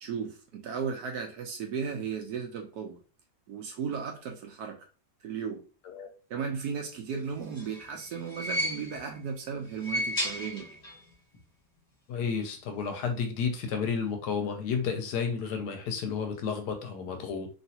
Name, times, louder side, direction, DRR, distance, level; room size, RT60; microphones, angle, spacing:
voice 1, 0.0-3.0 3.5-4.9 5.2-5.6 6.3-10.8, right 6 dB, 70° right, 3 dB, 1.0 m, -35 dB
sound 1, 7.3-9.2 9.7-11.1 11.3-11.4 12.5-12.6, equal, 30° left, 0.7 m, -34 dB
voice 2, 12.1-17.5, left 6 dB, 70° left, 5 dB, 1.1 m, -31 dB
3.0 x 2.7 x 2.7 m, 0.36 s
omnidirectional pair, 2.0 m